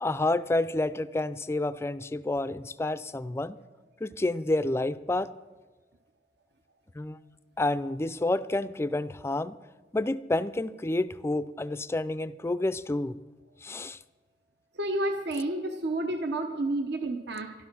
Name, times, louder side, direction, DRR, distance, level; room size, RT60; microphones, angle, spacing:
voice 1, 0.0-3.6 4.0-5.3 7.0-7.2 7.6-9.6 9.9-13.2 13.6-14.0, left 2 dB, 15° left, 14 dB, 0.4 m, -29 dB
voice 2, 14.7-17.5, right 1 dB, 65° right, 6 dB, 0.9 m, -30 dB
12.5 x 12.5 x 6.1 m, 1.3 s
head